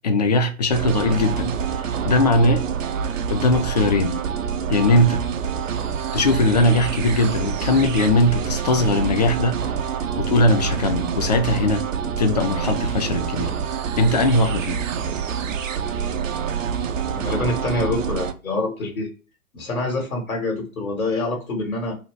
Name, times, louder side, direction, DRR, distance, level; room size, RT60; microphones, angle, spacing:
voice 1, 0.0-2.6 3.3-4.2 4.7-5.2 6.1-9.6 10.2-11.9 12.2-13.5 14.0-14.8, left 2 dB, 30° left, 0.4 m, -20 dB
sound 1, 0.7-18.3, right 7 dB, 65° right, 0.5 m, -26 dB
voice 2, 17.1-19.1 19.5-22.0, left 2 dB, 75° left, 1.3 m, -26 dB
2.7 x 2.3 x 3.1 m
figure-of-eight pair, 110°, 42 cm